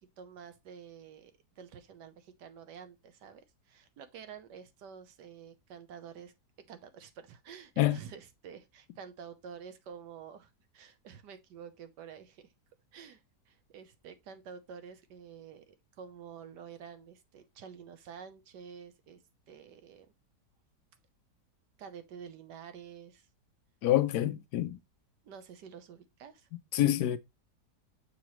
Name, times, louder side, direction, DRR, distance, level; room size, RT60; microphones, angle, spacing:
voice 1, 0.2-1.3 1.6-6.3 6.7-12.5 12.9-19.2 19.5-20.1 21.8-23.3 25.2-26.5, right 7 dB, 90° right, 1.4 m, -49 dB
voice 2, 23.8-24.8 26.7-27.2, left 13 dB, 75° left, 1.1 m, -27 dB
6.8 x 4.8 x 3.0 m
omnidirectional pair, 1.8 m